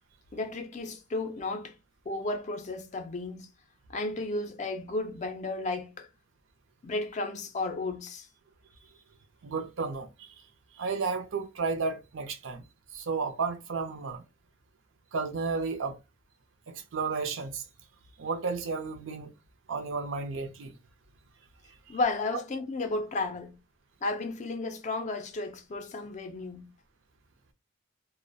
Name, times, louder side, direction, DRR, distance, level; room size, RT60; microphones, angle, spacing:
voice 1, 0.3-1.7 2.1-3.5 3.9-6.1 6.8-8.3 21.9-23.5 24.0-26.7, left 2 dB, 35° left, 0.4 m, -33 dB
voice 2, 9.4-10.4 10.7-12.6 12.9-14.2 15.1-16.0 16.7-17.6 18.2-19.3 19.7-20.8 21.9-22.0, right 4 dB, 65° right, 0.5 m, -32 dB
2.3 x 2.0 x 2.5 m
head